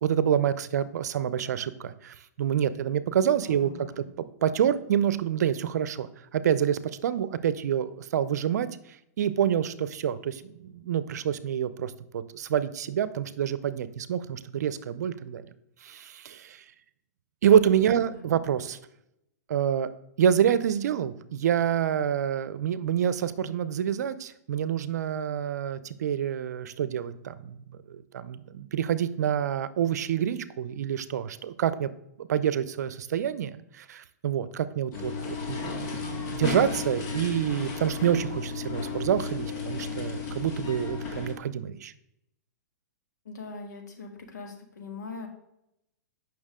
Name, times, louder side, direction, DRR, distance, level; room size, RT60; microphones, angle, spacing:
voice 1, 0.0-3.7 4.0-6.1 6.3-8.7 9.2-15.4 15.8-16.6 17.4-18.8 19.5-19.9 20.2-27.6 27.9-31.9 32.2-41.9, right 9 dB, 70° right, 15 dB, 0.6 m, -27 dB
voice 2, 3.4-4.1 17.9-18.3 34.9-35.1 43.3-45.3, left 3 dB, 90° left, 3 dB, 1.9 m, -42 dB
sound 1, 34.9-41.3, left 4 dB, 35° left, 1.8 m, -34 dB
8.7 x 5.9 x 3.6 m, 0.81 s
hypercardioid pair, 135°, 9 cm